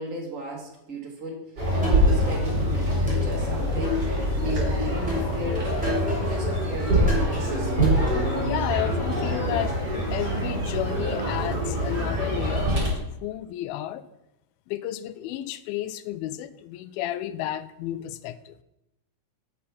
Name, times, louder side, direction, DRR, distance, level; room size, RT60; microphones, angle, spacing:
voice 1, 0.0-4.0 4.4-8.2, right 1 dB, 75° right, -2 dB, 0.7 m, -36 dB
sound 1, 1.6-12.9, equal, 30° right, 3.0 m, -25 dB
sound 2, 1.8-2.6 3.1-4.5 5.1-6.5 7.1-8.5, left 2 dB, ahead, 2.5 m, -33 dB
voice 2, 8.4-9.8 10.1-14.0 14.7-18.6, left 12 dB, 85° left, 12 dB, 2.4 m, -32 dB
8.5 x 5.7 x 5.7 m, 0.85 s
omnidirectional pair, 4.3 m